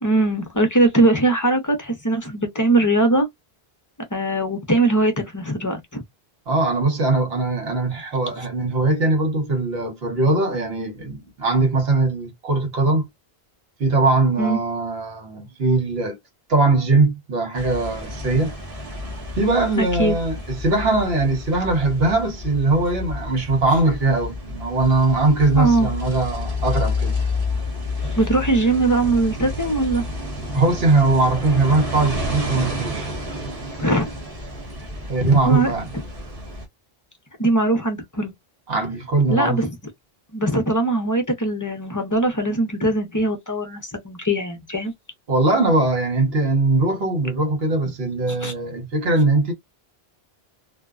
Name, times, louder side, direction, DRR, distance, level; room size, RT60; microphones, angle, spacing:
voice 1, 0.0-3.3 4.1-6.0 14.4-14.6 19.8-20.2 25.6-25.9 28.1-30.0 33.8-34.1 35.4-35.7 37.4-38.3 39.3-39.7 40.3-44.9 48.4-48.5, right 2 dB, 25° left, 0.5 m, -21 dB
voice 2, 6.5-13.1 13.8-16.2 16.5-18.5 19.4-27.1 30.5-33.1 35.1-35.8 38.7-39.6 45.3-49.5, right 3 dB, 70° right, 1.2 m, -20 dB
sound 1, 17.6-36.7, left 2 dB, 40° right, 0.9 m, -30 dB
2.7 x 2.1 x 2.3 m
omnidirectional pair, 1.0 m